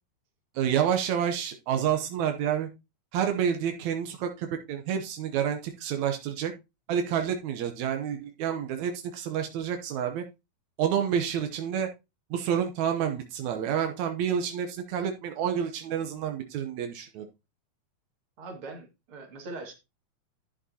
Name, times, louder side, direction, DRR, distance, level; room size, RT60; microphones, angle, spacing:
voice 1, 0.5-2.7 3.1-6.5 6.9-10.2 10.8-11.9 12.3-17.3, right 8 dB, 80° right, 1.6 m, -29 dB
voice 2, 18.4-19.7, right 3 dB, 40° right, 2.6 m, -41 dB
11.0 x 7.8 x 2.8 m
omnidirectional pair, 4.4 m